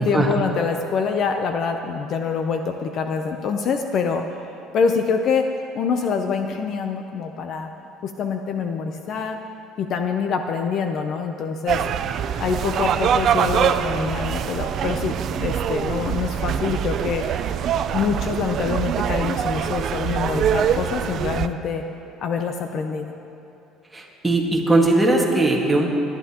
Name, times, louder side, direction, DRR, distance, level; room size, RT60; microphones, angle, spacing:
voice 1, 0.0-4.2 4.7-5.5 5.7-7.7 8.0-9.4 9.8-11.8 12.4-17.2 17.9-21.8 22.2-23.1, left 5 dB, 45° left, 5 dB, 0.7 m, -25 dB
sound 1, 11.7-21.5, right 8 dB, 45° right, 0.5 m, -24 dB
voice 2, 23.9-25.9, right 2 dB, 5° right, -2 dB, 1.8 m, -19 dB
24.5 x 11.5 x 3.0 m, 2.8 s
cardioid pair, 150°, 0 cm